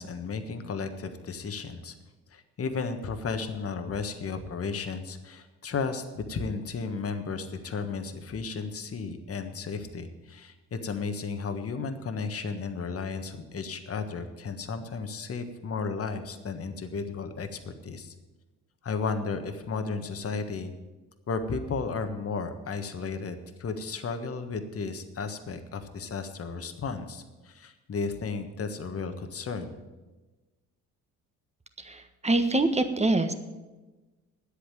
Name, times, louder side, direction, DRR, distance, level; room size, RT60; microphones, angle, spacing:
voice 1, 0.0-1.9 2.3-18.1 18.8-20.7 21.3-29.8, left 4 dB, 40° left, 8 dB, 1.4 m, -34 dB
voice 2, 31.8-33.3, right 2 dB, 15° right, 8 dB, 1.4 m, -25 dB
9.9 x 8.4 x 8.9 m, 1.2 s
hypercardioid pair, 55°, 38 cm